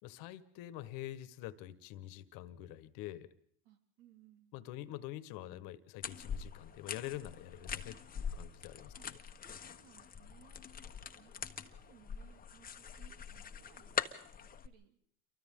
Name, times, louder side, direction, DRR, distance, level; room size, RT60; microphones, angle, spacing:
voice 1, 0.0-3.3 4.5-9.1, left 14 dB, 65° left, 14 dB, 1.6 m, -46 dB
voice 2, 3.6-4.5 8.6-9.1 9.5-10.7 11.1-14.0 14.4-15.0, right 10 dB, 70° right, 5 dB, 3.2 m, -64 dB
sound 1, 6.0-14.7, left 7 dB, 25° left, 1.2 m, -43 dB
29.0 x 23.5 x 3.8 m, 0.63 s
supercardioid pair, 105°, 37 cm